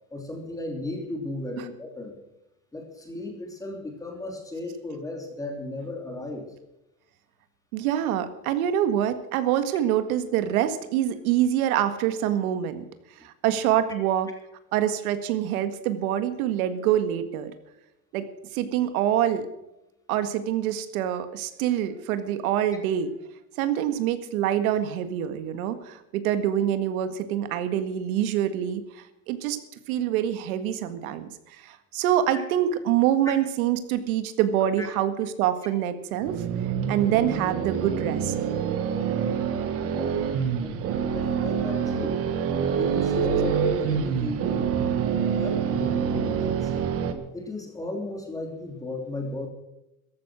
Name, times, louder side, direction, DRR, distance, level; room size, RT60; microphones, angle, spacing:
voice 1, 0.1-2.1 2.7-6.4 32.3-32.4 33.2-33.3 34.8-34.9 39.1-39.3 39.8-40.3 40.6-40.8 41.1-42.2 42.8-44.7 45.4-46.7 47.3-49.5, left 2 dB, 10° left, 2 dB, 3.1 m, -35 dB
voice 2, 7.7-12.8 13.2-14.3 14.7-17.5 18.1-18.3 18.5-19.5 20.1-23.1 23.6-29.6 29.9-36.4 36.9-38.3, right 11 dB, 80° right, 10 dB, 1.9 m, -25 dB
sound 1, 36.2-47.1, right 7 dB, 35° right, 1.5 m, -26 dB
14.5 x 13.0 x 6.3 m, 0.90 s
cardioid pair, 165°, 42 cm